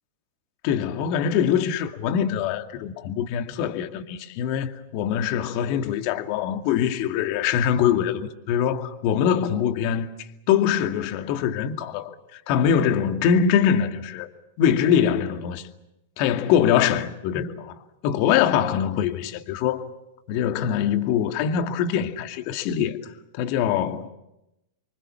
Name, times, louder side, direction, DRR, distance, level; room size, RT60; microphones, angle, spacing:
voice 1, 0.6-14.3 14.6-15.7 16.2-17.7 18.0-19.8 20.3-24.1, left 8 dB, 50° left, 2.3 m, -23 dB
29.0 x 24.5 x 7.1 m
figure-of-eight pair, 100°, 0 cm